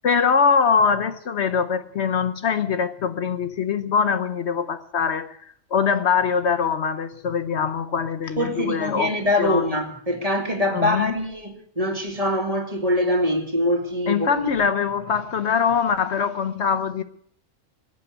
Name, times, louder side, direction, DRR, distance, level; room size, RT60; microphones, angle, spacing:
voice 1, 0.0-5.4 5.7-9.1 9.4-9.7 10.7-11.2 14.1-17.0, left 6 dB, 65° left, 1.1 m, -23 dB
voice 2, 8.4-14.5, left 1 dB, 30° right, 2.4 m, -24 dB
20.0 x 8.6 x 8.1 m
omnidirectional pair, 1.2 m